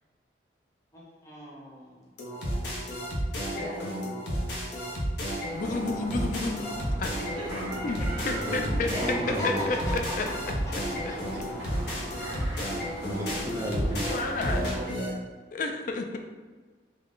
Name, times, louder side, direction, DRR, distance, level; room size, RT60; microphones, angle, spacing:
voice 1, 0.9-2.1 3.5-3.9 8.9-10.3 12.3-12.6 15.0-15.2, left 1 dB, 15° left, -7 dB, 0.8 m, -37 dB
sound 1, 2.2-15.1, equal, 65° left, 0.7 m, -32 dB
voice 2, 5.5-6.7 7.0-7.3 7.8-8.0 8.2-8.9 9.3-10.3 14.1-14.6 15.5-16.2, left 3 dB, 45° left, 4 dB, 0.3 m, -31 dB
sound 2, 5.5-14.8, equal, 55° right, 1.1 m, -40 dB
voice 3, 7.3-8.7 10.0-10.1 11.6-12.8 14.0-15.2, right 1 dB, 75° right, -10 dB, 1.3 m, -41 dB
voice 4, 8.2-9.7 13.0-14.1, equal, 15° right, -2 dB, 0.5 m, -33 dB
3.6 x 2.0 x 3.7 m, 1.3 s
head